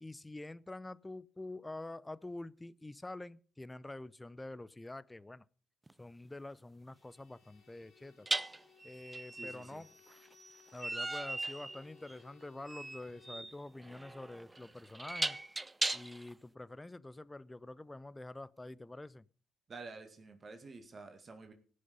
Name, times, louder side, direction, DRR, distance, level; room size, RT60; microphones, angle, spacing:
voice 1, 0.0-5.5 6.0-8.3 8.8-9.9 10.7-15.4 15.9-19.3, left 2 dB, 15° left, 0.6 m, -47 dB
sound 1, 5.9-6.0 8.3-16.3, right 2 dB, 20° right, 0.7 m, -39 dB
Bowed string instrument, 6.9-13.6, left 9 dB, 75° left, 3.3 m, -65 dB
voice 2, 9.3-9.8 19.7-21.5, right 3 dB, 45° right, 2.2 m, -50 dB
18.5 x 6.6 x 5.4 m
hypercardioid pair, 50°, 0 cm